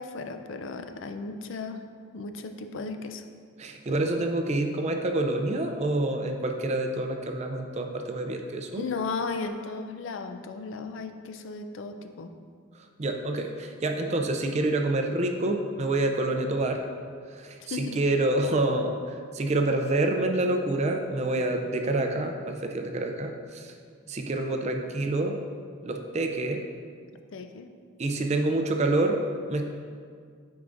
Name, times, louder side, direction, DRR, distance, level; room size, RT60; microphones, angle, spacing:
voice 1, 0.0-1.8 2.1-3.2 8.7-12.3 17.6-18.0 27.3-27.7, left 4 dB, 65° left, 7 dB, 0.4 m, -35 dB
voice 2, 3.6-8.8 12.7-16.8 17.3-23.7 24.1-25.4 25.8-26.6 28.0-29.2 29.5-29.7, right 2 dB, 35° right, 4 dB, 0.4 m, -27 dB
9.2 x 4.7 x 2.5 m, 2.1 s
head